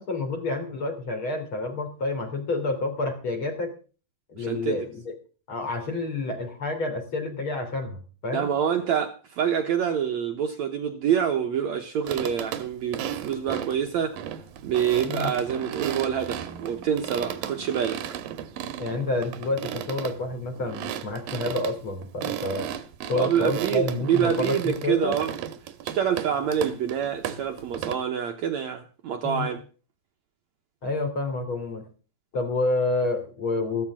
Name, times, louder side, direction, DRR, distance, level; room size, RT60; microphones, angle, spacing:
voice 1, 0.0-3.7 4.3-5.1 5.5-8.5 15.0-15.3 18.8-22.7 23.1-25.1 29.2-29.5 30.8-31.9 32.3-33.8, left 2 dB, 40° left, 3.7 m, -29 dB
voice 2, 4.4-4.9 8.3-14.3 14.6-18.0 23.1-25.3 25.6-29.6, right 8 dB, 65° right, 2.0 m, -26 dB
sound 1, 12.1-27.9, right 10 dB, 85° right, 2.9 m, -35 dB
15.0 x 14.5 x 3.6 m
omnidirectional pair, 4.0 m